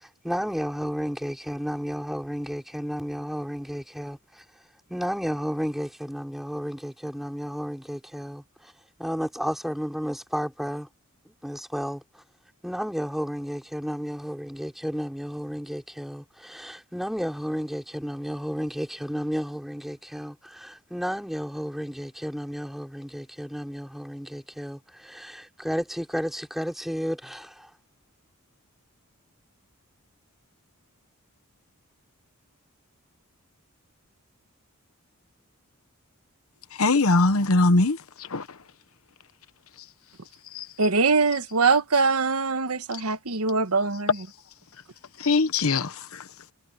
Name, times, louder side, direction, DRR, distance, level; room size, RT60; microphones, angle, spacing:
voice 1, 0.0-4.4 4.9-8.7 9.0-10.9 11.3-12.0 12.6-27.7, equal, ahead, 4.0 m, -32 dB
voice 2, 36.8-38.5 40.5-40.7 45.2-46.2, left 2 dB, 70° left, 1.1 m, -22 dB
voice 3, 40.8-44.3, right 4 dB, 85° right, 1.3 m, -23 dB
head